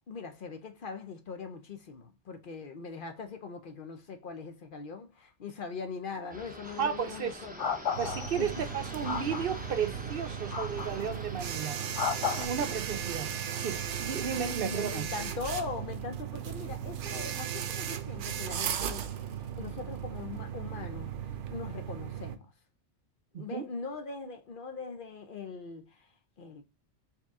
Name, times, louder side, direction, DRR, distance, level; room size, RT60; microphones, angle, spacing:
voice 1, 0.1-7.7 8.3-8.5 14.1-14.2 14.5-22.5 23.4-26.1 26.4-26.6, left 4 dB, 55° left, 0.8 m, -41 dB
sound 1, 6.3-14.5, equal, 10° right, 0.5 m, -45 dB
sound 2, 6.6-6.8 7.6-8.6 9.0-9.6 10.5-11.1 11.9-12.5, left 7 dB, 85° left, 1.2 m, -33 dB
voice 2, 6.8-7.3 8.0-11.8 12.4-15.1 23.3-23.7, right 7 dB, 60° right, 0.7 m, -34 dB
sound 3, 7.9-22.4, right 9 dB, 85° right, 0.9 m, -37 dB
4.6 x 3.0 x 3.5 m
omnidirectional pair, 1.2 m